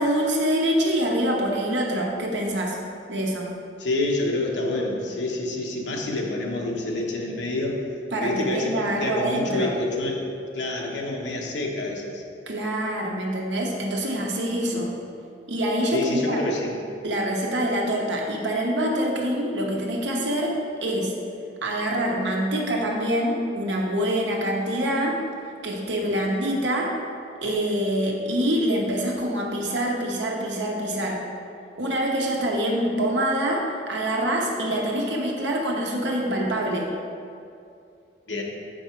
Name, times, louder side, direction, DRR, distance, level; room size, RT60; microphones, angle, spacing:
voice 1, 0.0-2.8 3.1-3.5 8.1-9.7 12.5-14.9 15.5-16.4 17.0-20.5 20.8-21.1 21.6-25.2 25.6-26.9 27.4-31.2 31.8-36.9, right 1 dB, 85° right, -1 dB, 1.1 m, -25 dB
voice 2, 3.8-7.8 8.1-10.3 10.5-12.2 14.7-14.8 15.9-16.8 38.3-38.4, left 2 dB, 90° left, -1 dB, 1.1 m, -27 dB
7.0 x 5.3 x 4.5 m, 2.5 s
head